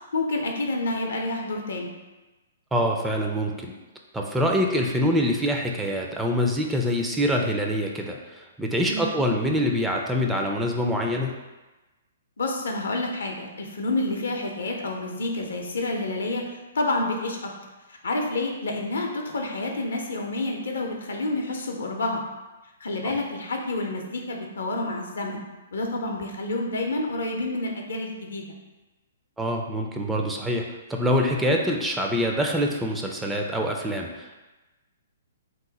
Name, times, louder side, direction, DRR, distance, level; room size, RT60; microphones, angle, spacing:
voice 1, 0.1-1.9 8.8-9.1 12.4-16.4 16.7-17.5 17.9-22.2 22.8-25.4 25.7-28.4, left 2 dB, 75° left, 2 dB, 0.5 m, -29 dB
voice 2, 2.7-3.7 4.1-11.3 23.0-23.2 29.4-34.4, equal, 5° right, 0 dB, 0.3 m, -25 dB
2.9 x 2.1 x 3.9 m, 1.1 s
hypercardioid pair, 125°, 0 cm